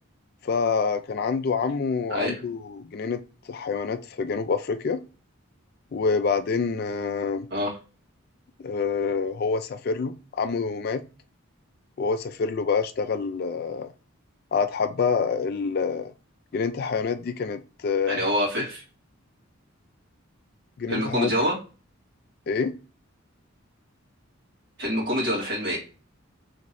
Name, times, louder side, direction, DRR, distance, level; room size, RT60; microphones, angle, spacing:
voice 1, 0.4-3.2 3.5-5.0 5.9-7.5 8.6-11.0 12.0-13.9 14.5-16.1 16.5-18.3 20.8-21.3 22.5-22.7, left 5 dB, 45° left, 0.3 m, -27 dB
voice 2, 18.1-18.8 20.9-21.6 24.8-25.8, equal, 50° right, 2.1 m, -26 dB
3.5 x 3.0 x 4.1 m
head